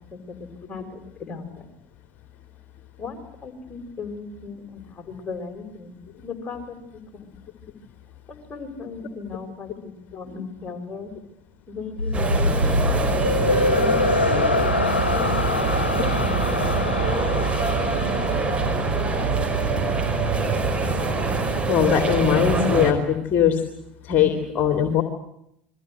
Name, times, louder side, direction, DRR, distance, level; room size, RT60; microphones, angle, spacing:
voice 1, 0.1-1.7 3.0-7.3 8.3-11.1 11.7-12.8 13.7-14.7 15.1-17.2, left 4 dB, 20° left, 4 dB, 6.5 m, -37 dB
sound 1, 12.0-19.3, left 3 dB, 80° left, 1.2 m, -25 dB
sound 2, 12.1-22.9, right 3 dB, 20° right, 5.6 m, -24 dB
voice 2, 21.7-23.6 24.0-25.0, left 9 dB, 35° left, 7 dB, 3.1 m, -20 dB
29.5 x 22.5 x 8.0 m, 0.78 s
figure-of-eight pair, 75°, 6 cm